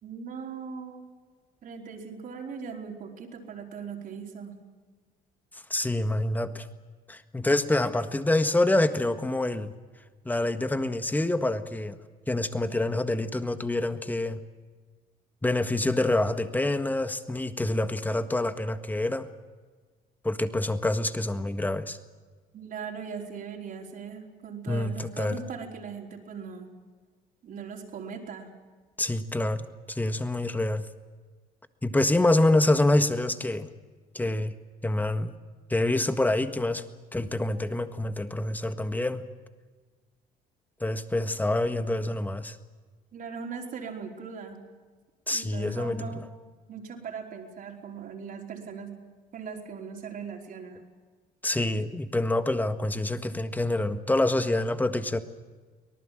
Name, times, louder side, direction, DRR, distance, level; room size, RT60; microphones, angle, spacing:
voice 1, 0.0-1.0 1.6-4.5 22.5-26.7 27.4-28.5 43.1-44.6 45.3-46.2 46.7-48.9 49.3-50.8, right 6 dB, 55° right, 1 dB, 4.7 m, -39 dB
voice 2, 5.7-6.7 7.1-9.7 10.2-12.0 12.3-14.4 15.4-19.3 20.2-22.0 24.7-25.4 29.0-30.9 31.8-33.7 34.1-34.5 34.8-35.3 35.7-36.8 37.1-39.2 40.8-42.6 45.3-46.2 51.4-55.2, left 2 dB, 10° left, 9 dB, 1.6 m, -26 dB
24.5 x 19.0 x 7.7 m, 1.4 s
cardioid pair, 110°, 17 cm